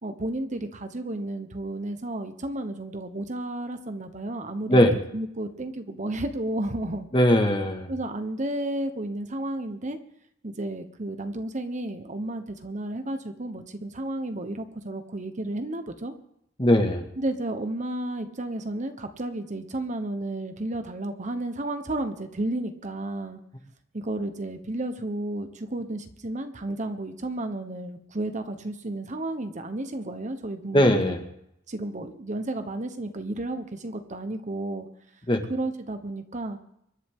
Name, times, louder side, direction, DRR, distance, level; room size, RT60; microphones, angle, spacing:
voice 1, 0.0-4.9 5.1-7.1 7.9-10.0 10.4-16.1 17.2-23.4 23.9-31.0 31.7-34.9 35.5-36.6, right 1 dB, 40° right, 8 dB, 1.1 m, -32 dB
voice 2, 7.1-7.9 16.6-17.1 30.7-31.2 35.3-35.4, equal, 25° left, 4 dB, 1.8 m, -20 dB
25.0 x 11.0 x 3.8 m, 0.76 s
head